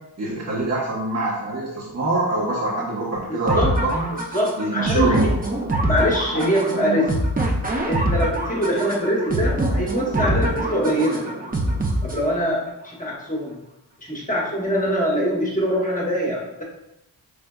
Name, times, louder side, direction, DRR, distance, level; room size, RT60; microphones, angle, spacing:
voice 1, 0.2-4.1 4.6-5.3 6.3-7.0, right 2 dB, 40° right, -6 dB, 1.1 m, -25 dB
voice 2, 3.3-3.8 4.3-5.2 5.9-7.1 7.9-11.3 12.0-13.6 14.0-16.6, equal, 20° left, -3 dB, 1.0 m, -23 dB
sound 1, 3.5-12.5, right 1 dB, 20° right, 0.6 m, -24 dB
5.2 x 3.2 x 2.3 m, 0.88 s
cardioid pair, 70°, 40 cm